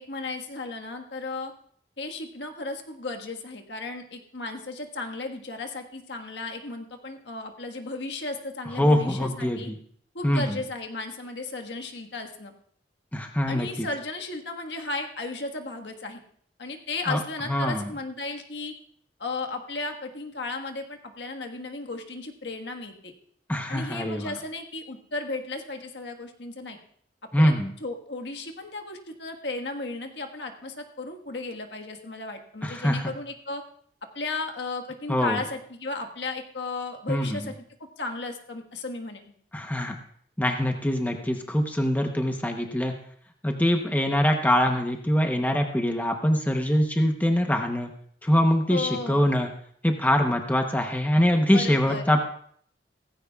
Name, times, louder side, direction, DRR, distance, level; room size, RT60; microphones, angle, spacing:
voice 1, 0.0-1.5 2.0-9.7 10.1-12.5 13.5-16.2 16.6-18.7 19.2-23.1 23.7-26.8 27.4-27.5 27.8-33.6 34.1-37.5 38.0-39.2 48.7-49.2 51.5-52.0, left 3 dB, 75° left, 4 dB, 1.6 m, -35 dB
voice 2, 8.8-9.8 10.2-10.5 13.1-13.9 17.1-17.2 17.5-17.9 23.5-24.3 27.3-27.7 32.6-33.1 35.1-35.4 37.1-37.4 39.5-40.0 40.4-42.9 43.4-47.9 48.2-49.5 49.8-52.2, equal, 10° left, 3 dB, 0.9 m, -23 dB
17.0 x 15.5 x 2.4 m, 0.62 s
head